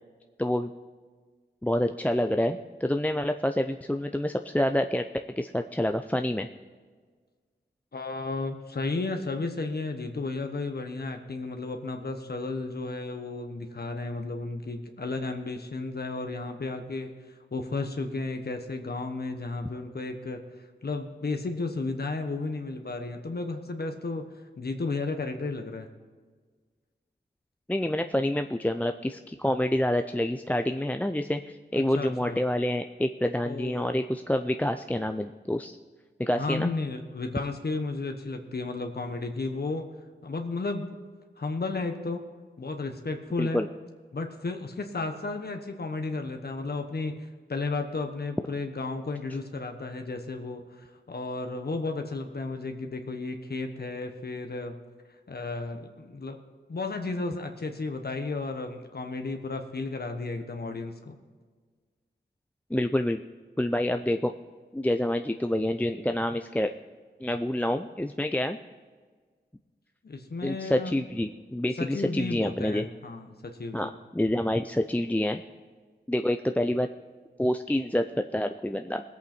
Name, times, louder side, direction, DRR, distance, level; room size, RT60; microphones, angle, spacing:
voice 1, 0.4-0.7 1.6-5.0 5.4-6.5 27.7-35.8 36.2-36.7 43.4-43.7 62.7-63.2 63.6-64.3 64.7-66.7 67.2-68.6 70.4-72.8 73.7-75.4 76.1-76.9 77.4-78.0 78.3-79.0, left 1 dB, 10° left, 6 dB, 0.5 m, -27 dB
voice 2, 7.9-24.2 24.6-25.9 31.7-32.4 33.4-34.0 36.4-39.9 40.2-40.9 41.4-42.2 42.6-43.6 44.1-47.1 47.5-54.8 55.3-56.4 56.7-61.2 70.0-71.0 71.8-73.9, left 3 dB, 55° left, 5 dB, 1.1 m, -33 dB
18.5 x 8.3 x 4.4 m, 1.5 s
cardioid pair, 45°, 19 cm